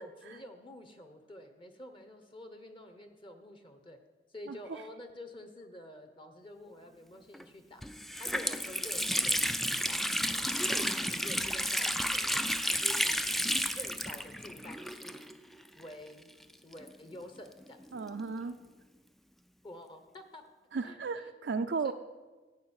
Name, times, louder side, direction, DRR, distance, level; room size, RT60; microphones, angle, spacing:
voice 1, 0.0-4.0 4.3-7.9 8.2-13.2 13.7-15.2 15.7-16.3 16.6-18.0 19.6-20.4 20.8-21.3 21.8-21.9, left 1 dB, 30° left, 7 dB, 1.0 m, -49 dB
Water tap faucet, 7.3-7.4 7.8-15.5 15.8-15.9 16.7-18.3, equal, ahead, 0.3 m, -32 dB
voice 2, 17.9-18.6 20.7-21.9, right 4 dB, 65° right, 7 dB, 0.4 m, -34 dB
14.0 x 5.5 x 8.8 m, 1.3 s
head